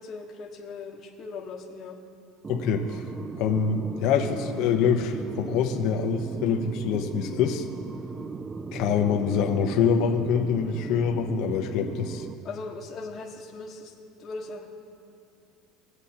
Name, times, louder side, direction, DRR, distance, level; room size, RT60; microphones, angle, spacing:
voice 1, 0.0-2.0 12.4-13.9 14.2-14.7, left 3 dB, 35° left, -4 dB, 1.3 m, -39 dB
sound 1, 2.4-12.3, right 4 dB, 20° right, 0.3 m, -36 dB
voice 2, 2.5-3.1 3.4-7.7 8.7-12.3, left 7 dB, 55° left, 3 dB, 0.9 m, -25 dB
23.0 x 8.0 x 2.9 m, 2.5 s
cardioid pair, 145°, 0 cm